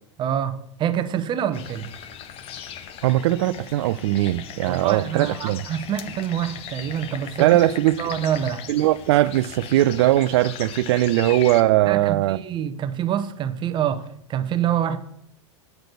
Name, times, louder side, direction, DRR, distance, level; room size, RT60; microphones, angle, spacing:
voice 1, 0.2-0.5 0.8-1.9 4.7-7.6 8.0-8.6 11.9-14.0 14.3-15.0, right 9 dB, 30° right, 0.8 m, -26 dB
sound 1, 1.5-11.6, left 9 dB, 35° left, 0.7 m, -38 dB
voice 2, 3.0-5.6 7.4-8.1 8.7-12.4, right 15 dB, 60° right, 0.4 m, -20 dB
8.1 x 5.1 x 6.1 m
hypercardioid pair, 95°, 16 cm